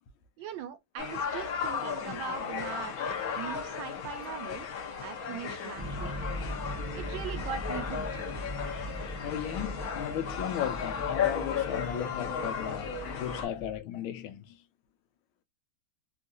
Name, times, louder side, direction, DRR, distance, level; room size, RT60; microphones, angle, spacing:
voice 1, 0.4-2.9 3.3-4.7 5.0-6.1 6.9-8.2, right 8 dB, 75° right, 1.3 m, -40 dB
sound 1, 1.0-13.5, left 7 dB, 55° left, 1.1 m, -35 dB
sound 2, 5.8-13.8, equal, 10° right, 0.8 m, -40 dB
voice 2, 9.2-14.6, left 10 dB, 90° left, 1.4 m, -36 dB
3.6 x 2.3 x 2.4 m
omnidirectional pair, 2.2 m